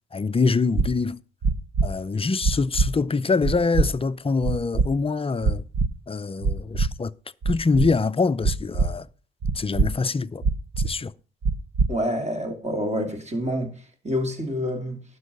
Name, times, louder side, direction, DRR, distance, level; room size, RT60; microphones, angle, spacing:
voice 1, 0.1-1.2 1.8-5.6 6.1-7.1 7.5-9.1 9.5-10.4 10.8-11.1, left 4 dB, 20° left, 0.5 m, -24 dB
sound 1, 0.7-0.9 1.4-1.9 2.4-2.9 3.4-3.9 4.4-4.9 5.4-5.9 6.4-6.9 7.4-7.9 8.4-8.9 9.4-9.9 10.4-10.9 11.4-11.9, right 4 dB, 55° right, 1.2 m, -22 dB
voice 2, 11.9-13.7 14.0-15.0, equal, 20° right, 2.8 m, -27 dB
12.0 x 4.7 x 8.1 m
cardioid pair, 90°, 30 cm